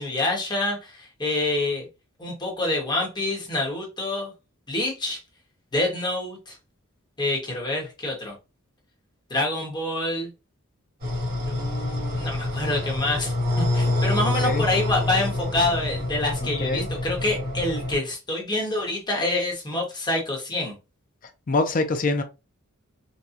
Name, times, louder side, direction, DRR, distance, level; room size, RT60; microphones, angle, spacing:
voice 1, 0.0-1.9 2.2-4.3 4.7-5.2 5.7-6.6 7.2-8.3 9.3-10.3 11.5-20.8, left 2 dB, 20° left, 1.2 m, -27 dB
sound 1, 11.0-18.0, left 2 dB, 45° right, 1.5 m, -27 dB
voice 2, 16.4-16.9 21.5-22.2, left 3 dB, 40° left, 0.5 m, -24 dB
4.1 x 2.3 x 2.5 m
head